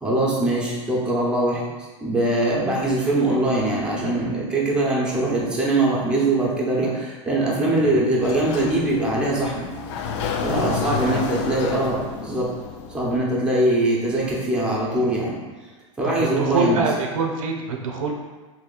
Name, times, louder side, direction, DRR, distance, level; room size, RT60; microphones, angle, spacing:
voice 1, 0.0-9.7 10.4-12.5 12.9-15.4 16.0-16.8, right 1 dB, 5° right, -6 dB, 0.9 m, -22 dB
Sliding door, 8.2-13.2, left 6 dB, 60° left, 0.4 m, -30 dB
voice 2, 10.5-11.2 16.0-18.1, right 3 dB, 85° right, 1 dB, 0.6 m, -25 dB
2.8 x 2.8 x 4.0 m, 1.3 s
hypercardioid pair, 120°, 17 cm